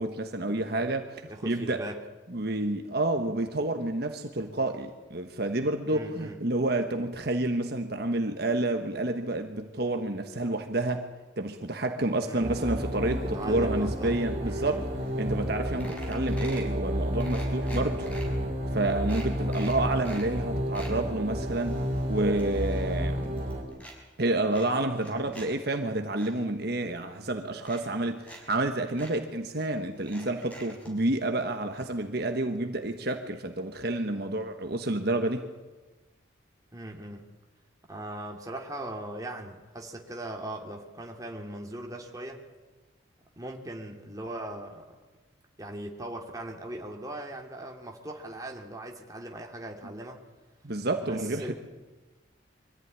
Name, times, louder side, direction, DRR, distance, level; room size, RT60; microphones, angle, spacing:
voice 1, 0.0-1.8 2.3-14.8 15.2-18.1 18.7-21.8 22.1-23.4 24.2-35.5 50.6-51.5, right 2 dB, 50° right, 5 dB, 1.3 m, -29 dB
voice 2, 1.3-2.0 5.9-6.4 12.2-12.7 13.2-14.8 25.0-25.5 36.7-37.2 37.9-42.4 43.3-45.0 45.6-50.2 51.0-51.5, right 1 dB, 15° right, 1 dB, 2.5 m, -39 dB
sound 1, 12.4-23.6, equal, 35° right, 4.0 m, -31 dB
sound 2, 15.1-15.2 15.4-15.5 15.8-16.7 17.2-18.2 18.7-18.8 19.1-20.3 20.5-21.0 21.5-23.0 23.2-24.0 24.5-25.5 25.8-26.3 27.1-27.2 27.6-28.4 28.6-28.7 29.0-29.1 30.0-30.9 31.8-31.9 32.2-32.3, right 1 dB, 5° left, 5.7 m, -46 dB
sound 3, 18.0-20.1, left 1 dB, 35° left, 4.9 m, -44 dB
24.0 x 14.5 x 9.7 m, 1.2 s
head